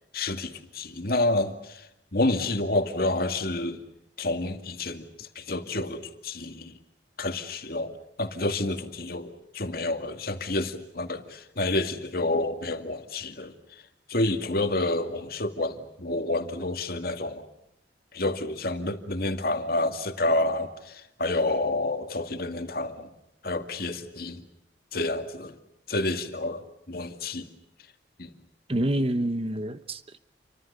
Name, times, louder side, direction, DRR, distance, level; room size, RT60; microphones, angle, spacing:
voice 1, 0.1-3.8 4.2-6.7 7.2-13.5 14.1-17.5 18.1-23.1 23.4-24.4 24.9-25.6 25.9-27.5 28.2-28.3, left 2 dB, 55° left, 6 dB, 2.3 m, -29 dB
voice 2, 28.7-30.2, right 1 dB, 30° right, 11 dB, 1.0 m, -27 dB
29.5 x 25.0 x 6.9 m, 0.83 s
head